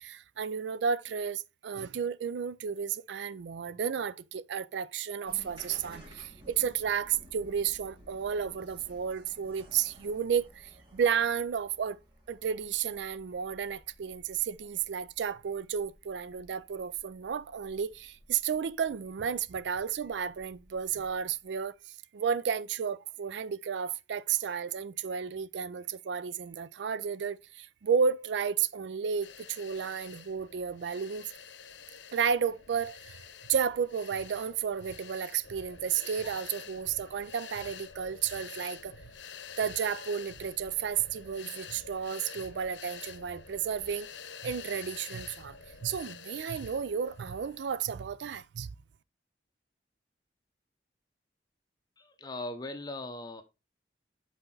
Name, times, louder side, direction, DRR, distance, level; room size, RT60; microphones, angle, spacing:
voice 1, 0.0-12.0 12.3-31.3 32.1-33.2 33.5-39.0 39.6-44.1 44.4-45.6 45.8-48.7, right 7 dB, 75° right, 0.4 m, -32 dB
sound 1, 5.2-21.4, equal, 25° right, 2.1 m, -56 dB
sound 2, 29.2-47.7, left 7 dB, 80° left, 0.8 m, -48 dB
voice 2, 52.0-53.4, left 2 dB, 20° left, 0.9 m, -39 dB
8.0 x 4.3 x 3.8 m
head